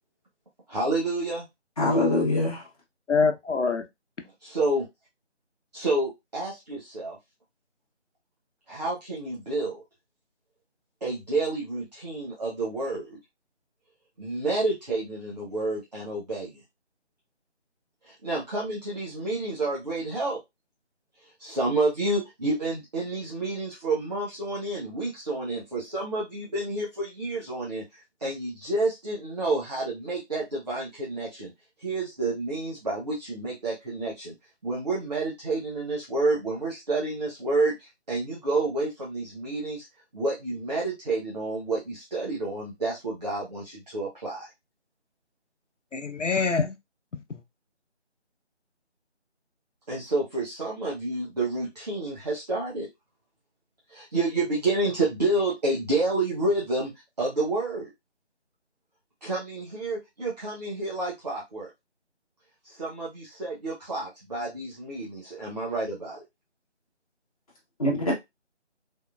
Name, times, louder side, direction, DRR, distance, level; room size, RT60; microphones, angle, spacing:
voice 1, 0.7-1.5 4.2-4.9 5.7-7.2 8.7-9.8 11.0-13.2 14.2-16.6 18.0-20.4 21.2-31.5 31.8-34.3 34.6-39.9 40.1-44.5 49.9-52.9 53.9-56.9 57.2-57.9 59.2-61.7 62.6-66.2, right 2 dB, 35° right, 0.9 m, -29 dB
voice 2, 1.8-2.7 67.8-68.1, left 1 dB, 30° left, 1.2 m, -23 dB
voice 3, 3.1-3.9 45.9-46.8 47.1-47.4, left 4 dB, 90° left, 0.8 m, -25 dB
3.6 x 2.7 x 2.4 m
figure-of-eight pair, 160°, 35 cm